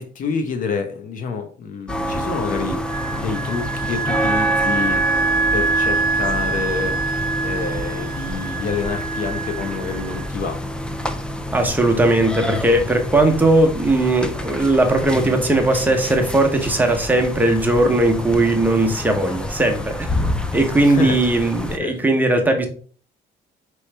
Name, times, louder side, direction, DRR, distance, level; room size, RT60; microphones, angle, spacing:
voice 1, 0.0-10.6 15.1-15.5 20.8-21.2 21.8-22.0, left 5 dB, 55° left, 6 dB, 0.9 m, -28 dB
sound 1, 1.9-21.8, equal, 5° left, 0.4 m, -28 dB
Wind instrument woodwind instrument, 2.9-10.3, right 4 dB, 60° right, 0.9 m, -25 dB
voice 2, 11.5-20.1 20.5-22.7, right 2 dB, 10° right, 3 dB, 0.9 m, -18 dB
4.6 x 3.1 x 3.2 m, 0.44 s
cardioid pair, 110°, 17 cm